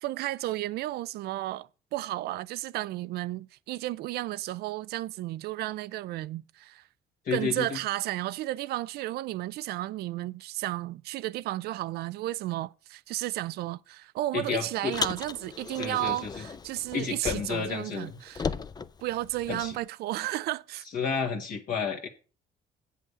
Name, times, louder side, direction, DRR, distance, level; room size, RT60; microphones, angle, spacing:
voice 1, 0.0-6.8 7.3-18.5 19.0-20.8, right 16 dB, 70° right, 0.4 m, -33 dB
voice 2, 7.2-7.8 14.3-14.9 15.8-16.4 16.9-18.2 19.5-19.7 20.9-22.1, left 6 dB, 55° left, 1.6 m, -31 dB
Car, 14.9-17.7 18.0-19.8, left 5 dB, 25° left, 0.5 m, -36 dB
8.4 x 5.7 x 6.7 m
cardioid pair, 110°, 17 cm